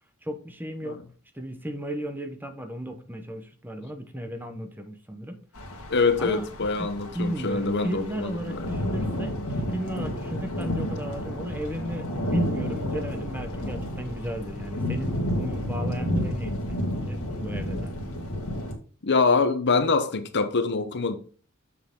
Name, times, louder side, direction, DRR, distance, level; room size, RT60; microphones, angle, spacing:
voice 1, 0.2-1.0 1.3-5.4 6.2-6.5 6.8-17.9, equal, 10° right, 0.9 m, -35 dB
sound 1, 5.5-18.7, equal, 70° left, 1.9 m, -31 dB
voice 2, 5.9-8.6 10.4-10.5 19.0-21.1, left 4 dB, 55° left, 0.9 m, -24 dB
7.2 x 6.5 x 3.7 m
head